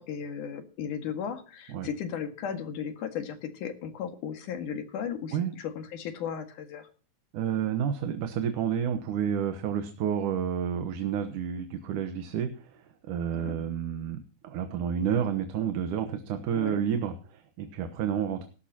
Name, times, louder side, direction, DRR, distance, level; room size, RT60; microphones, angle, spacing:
voice 1, 0.0-6.9 13.3-13.7 16.5-16.8, left 7 dB, 75° left, 7 dB, 3.4 m, -36 dB
voice 2, 7.3-18.5, right 8 dB, 80° right, 8 dB, 2.7 m, -30 dB
18.0 x 12.5 x 2.9 m, 0.38 s
omnidirectional pair, 3.6 m